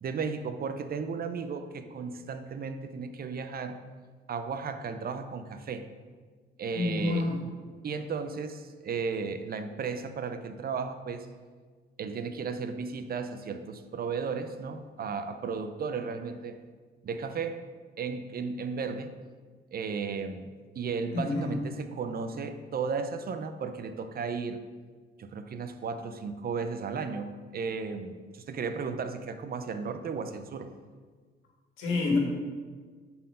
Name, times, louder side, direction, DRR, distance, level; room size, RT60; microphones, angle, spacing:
voice 1, 0.0-3.8 4.3-5.9 6.6-7.3 7.8-11.3 12.0-16.6 17.0-17.6 18.0-19.1 19.7-20.5 20.8-24.6 25.2-30.7, right 5 dB, 50° right, 9 dB, 0.6 m, -34 dB
voice 2, 6.7-7.4 21.1-21.6 31.8-32.2, left 3 dB, 85° left, 0 dB, 1.8 m, -28 dB
7.5 x 4.4 x 5.5 m, 1.5 s
cardioid pair, 90°, 20 cm